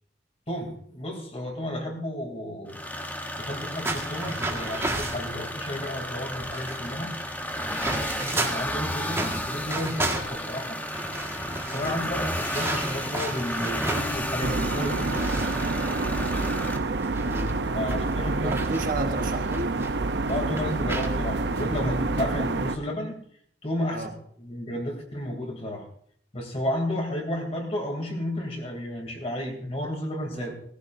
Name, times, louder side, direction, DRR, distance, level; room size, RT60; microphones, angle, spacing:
voice 1, 0.5-2.8 3.4-7.1 7.8-10.8 11.7-15.3 17.2-18.5 20.3-23.2 23.6-24.1 24.4-25.8 26.3-30.5, left 1 dB, 35° left, 2 dB, 3.0 m, -32 dB
sound 1, 2.7-16.8, left 1 dB, 10° left, 1.0 m, -33 dB
sound 2, 3.8-5.3 6.0-6.1 6.3-8.7 9.1-14.5 14.8-19.9 20.3-21.1 21.6-21.7 22.3-22.5, right 2 dB, 15° right, 1.7 m, -34 dB
voice 2, 7.8-8.1 11.8-12.1 17.9-19.7 23.9-24.2 30.3-30.6, right 2 dB, 55° right, 5 dB, 1.3 m, -34 dB
sound 3, 14.4-22.8, right 3 dB, 70° right, 0.7 m, -28 dB
19.0 x 15.0 x 2.7 m, 0.63 s
head